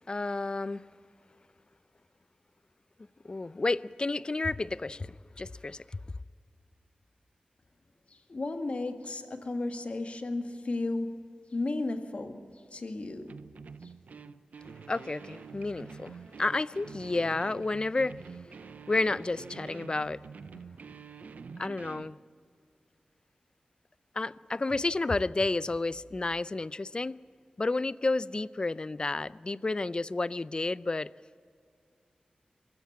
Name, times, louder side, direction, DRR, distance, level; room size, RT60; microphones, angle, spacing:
voice 1, 0.1-0.9 3.2-6.0 14.9-18.4 18.9-20.2 21.6-22.2 24.1-27.2 27.6-31.1, left 3 dB, 35° left, 0.4 m, -31 dB
voice 2, 8.1-13.4 13.8-13.9, left 2 dB, 55° left, 1.9 m, -34 dB
sound 1, 13.3-22.1, right 5 dB, 90° right, 0.6 m, -47 dB
23.5 x 14.0 x 8.6 m
wide cardioid pair, 70°, 3 cm